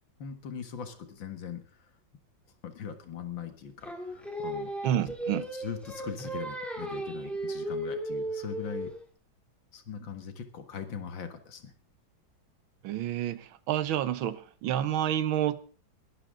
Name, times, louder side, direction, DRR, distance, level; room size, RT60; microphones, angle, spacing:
voice 1, 0.2-1.6 2.6-8.9 9.7-11.7, left 7 dB, 70° left, 2.3 m, -41 dB
Singing, 3.8-9.0, right 1 dB, ahead, 2.7 m, -35 dB
voice 2, 4.8-5.4 12.8-15.6, right 11 dB, 85° right, 1.7 m, -29 dB
21.5 x 12.0 x 3.7 m
omnidirectional pair, 2.1 m